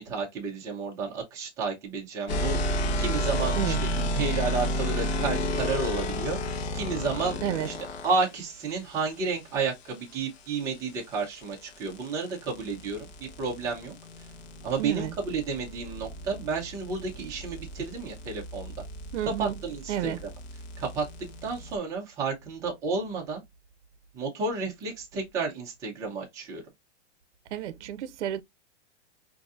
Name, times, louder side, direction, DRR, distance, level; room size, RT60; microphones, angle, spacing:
voice 1, 0.0-2.6 3.0-3.9 4.1-6.4 6.7-7.7 8.0-14.3 14.6-18.7 19.2-20.1 20.8-21.1 21.4-23.4 24.1-26.6, right 4 dB, 10° right, 0.5 m, -31 dB
sound 1, 2.3-8.3 10.8-21.8, equal, 60° left, 1.0 m, -32 dB
voice 2, 14.8-15.1 19.1-19.5 19.9-20.2 27.5-28.4, right 11 dB, 70° right, 0.6 m, -31 dB
5.1 x 2.7 x 2.4 m
supercardioid pair, 165°, 35 cm